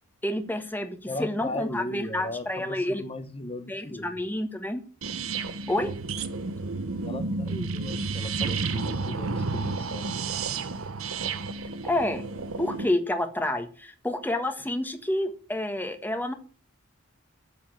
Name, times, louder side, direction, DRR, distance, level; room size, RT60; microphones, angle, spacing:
voice 1, 0.2-3.0 3.7-4.8 5.7-5.9 11.8-12.3 12.6-16.3, left 1 dB, 10° left, 1.5 m, -29 dB
voice 2, 1.1-4.2 7.0-10.1, left 2 dB, 25° left, 1.1 m, -37 dB
sound 1, 5.0-12.9, right 4 dB, 75° right, 1.0 m, -31 dB
8.5 x 7.1 x 8.7 m
head